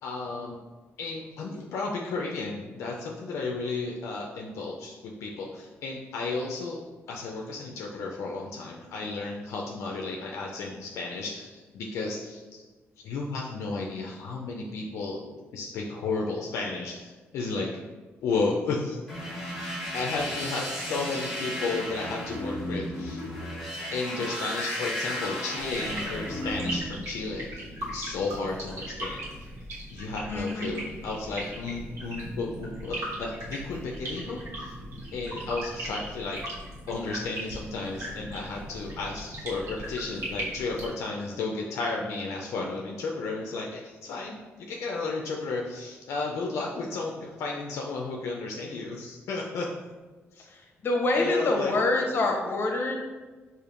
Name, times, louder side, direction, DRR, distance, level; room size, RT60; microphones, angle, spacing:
voice 1, 0.0-0.6 1.0-6.8 7.1-12.6 13.0-17.7 18.2-19.0 19.9-23.2 23.9-27.7 27.9-29.5 29.9-34.7 35.1-36.4 36.9-49.8 50.4-50.5 51.1-52.1, left 3 dB, 80° left, -1 dB, 0.4 m, -33 dB
sound 1, 19.1-26.8, equal, ahead, 1.1 m, -34 dB
sound 2, 25.6-40.9, right 1 dB, 70° right, 1.3 m, -38 dB
voice 2, 30.3-30.7 50.8-53.0, left 2 dB, 50° left, 1 dB, 0.7 m, -26 dB
5.0 x 2.5 x 2.5 m, 1.3 s
cardioid pair, 85°, 5 cm